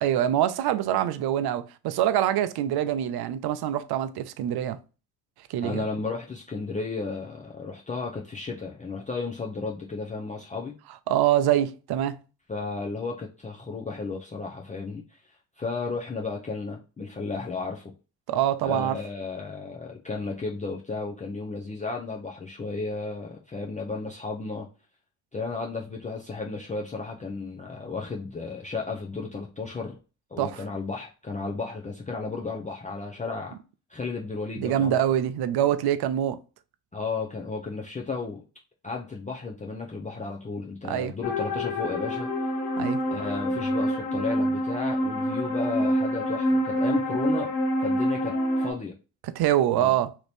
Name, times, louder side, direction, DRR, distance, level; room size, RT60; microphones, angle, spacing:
voice 1, 0.0-4.8 5.5-5.9 11.1-12.2 18.3-19.0 30.4-30.6 34.6-36.4 40.8-41.1 42.8-43.0 49.2-50.1, right 11 dB, 55° right, 0.5 m, -25 dB
voice 2, 5.6-10.8 12.5-15.2 15.6-17.9 18.6-24.7 25.3-30.0 30.3-33.5 33.9-35.0 36.9-38.4 38.8-42.3 43.1-47.5 47.8-48.9 49.7-49.9, left 4 dB, 15° left, 0.5 m, -33 dB
sound 1, 41.2-48.7, equal, 85° left, 0.8 m, -26 dB
3.0 x 2.5 x 3.2 m
supercardioid pair, 70°, 46 cm